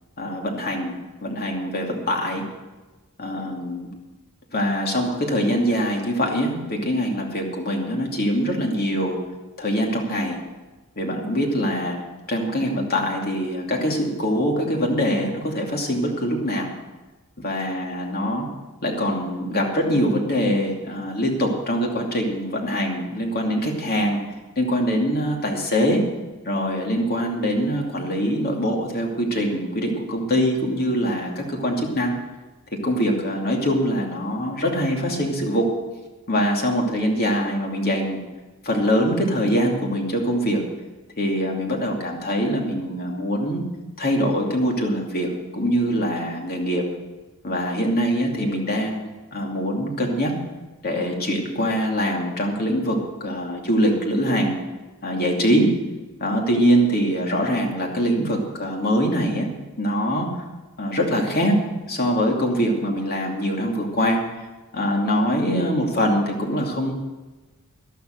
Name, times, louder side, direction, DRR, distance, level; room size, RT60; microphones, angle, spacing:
voice 1, 0.2-1.0 1.2-2.4 3.2-3.9 4.5-9.2 9.6-10.4 11.0-12.0 12.3-16.7 17.4-18.5 18.8-24.2 24.6-26.0 26.5-32.1 32.8-35.7 36.3-38.2 38.6-40.6 41.2-43.6 44.0-46.8 47.4-50.3 50.8-54.6 55.0-55.7 56.2-59.5 59.8-60.3 60.8-61.6 61.9-64.2 64.7-66.9, equal, 45° left, 1 dB, 2.6 m, -23 dB
12.5 x 12.0 x 6.5 m, 1.2 s
head